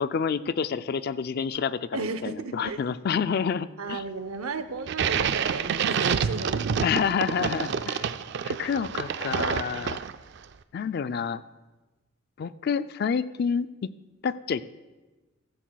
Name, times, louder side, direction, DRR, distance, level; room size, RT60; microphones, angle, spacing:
voice 1, 0.0-4.0 6.8-8.1 8.4-10.0 10.7-11.4 12.4-13.9 14.2-14.6, left 6 dB, 45° left, 13 dB, 0.3 m, -28 dB
voice 2, 1.9-2.8 3.8-6.9, right 4 dB, 85° right, 11 dB, 0.7 m, -34 dB
sound 1, 4.9-10.4, right 7 dB, 55° right, 0.4 m, -28 dB
15.0 x 14.0 x 2.3 m, 1.2 s
head